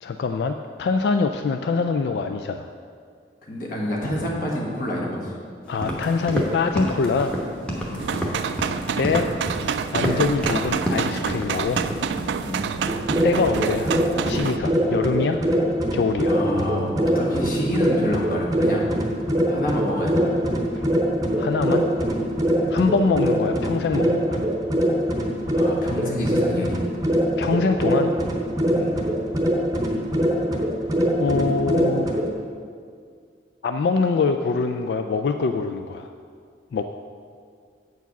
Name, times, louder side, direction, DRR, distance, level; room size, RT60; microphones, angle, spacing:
voice 1, 0.0-2.7 5.7-7.4 9.0-9.3 9.9-11.8 13.2-13.9 14.2-15.4 15.9-16.4 21.3-21.8 22.7-24.4 27.4-28.1 31.2-32.1 33.6-36.1 36.7-36.8, left 4 dB, 70° left, 6 dB, 0.3 m, -24 dB
voice 2, 3.4-5.3 7.9-8.1 12.4-12.6 16.2-18.9 19.5-20.4 22.6-22.8 25.5-26.8 28.7-29.0, equal, 50° left, -3 dB, 1.5 m, -28 dB
sound 1, 5.7-12.3, equal, 5° left, 1.0 m, -28 dB
sound 2, 8.0-14.6, right 6 dB, 85° right, 0.3 m, -28 dB
sound 3, 12.8-32.3, equal, 20° right, 0.7 m, -23 dB
8.1 x 4.7 x 5.9 m, 2.2 s
head